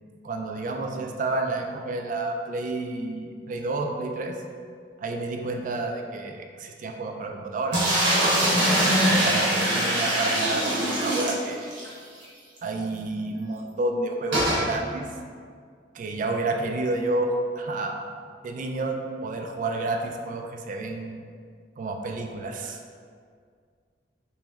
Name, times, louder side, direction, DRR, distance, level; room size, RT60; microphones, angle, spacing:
voice 1, 0.2-4.3 5.0-7.8 8.7-11.6 12.6-15.1 15.9-18.1 18.4-21.2 21.8-22.8, right 2 dB, 45° right, 3 dB, 0.3 m, -30 dB
sound 1, 7.7-11.9 12.2-12.3 12.6-12.7 14.3-14.7, right 1 dB, 75° right, 1.0 m, -22 dB
3.1 x 3.0 x 3.4 m, 2.1 s
head